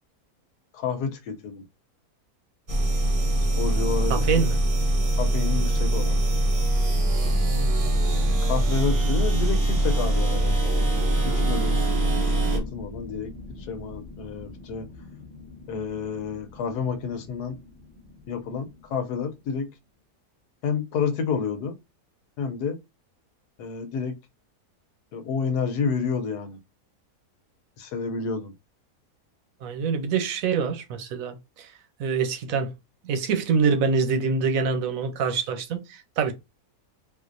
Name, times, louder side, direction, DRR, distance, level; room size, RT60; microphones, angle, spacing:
voice 1, 0.7-1.6 3.4-4.4 5.2-6.2 8.4-10.9 11.2-11.9 12.2-13.3 13.7-14.9 15.7-17.6 18.3-19.7 20.6-21.8 22.4-22.8 23.6-24.2 25.1-26.6 27.8-28.5, left 5 dB, 80° left, 1.2 m, -30 dB
sound 1, 2.7-12.6, right 1 dB, 40° right, 0.8 m, -23 dB
voice 2, 4.1-4.6 29.6-31.7 32.0-32.7 33.0-36.3, right 5 dB, 65° right, 1.0 m, -25 dB
sound 2, 7.2-19.5, left 2 dB, 5° right, 0.7 m, -40 dB
3.9 x 2.5 x 2.5 m
omnidirectional pair, 1.7 m